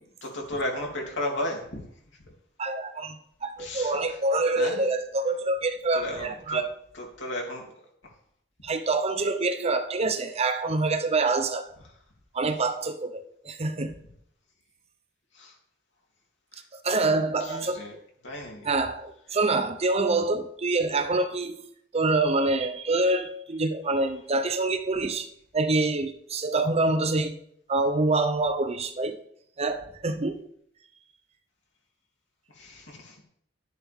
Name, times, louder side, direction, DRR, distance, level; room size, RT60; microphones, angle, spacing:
voice 1, 0.2-1.8 2.1-2.2 3.6-4.2 4.5-4.8 5.9-6.6 6.9-7.7 15.3-15.5 16.5-16.6 17.4-17.9 18.2-18.7 32.5-33.2, left 1 dB, 70° left, -1 dB, 3.1 m, -34 dB
voice 2, 2.6-6.7 8.6-11.7 12.3-13.9 16.7-18.0 18.6-25.3 25.5-27.4 27.7-29.2 29.6-30.4, right 3 dB, 35° right, 8 dB, 0.7 m, -26 dB
12.0 x 10.5 x 3.6 m, 0.69 s
head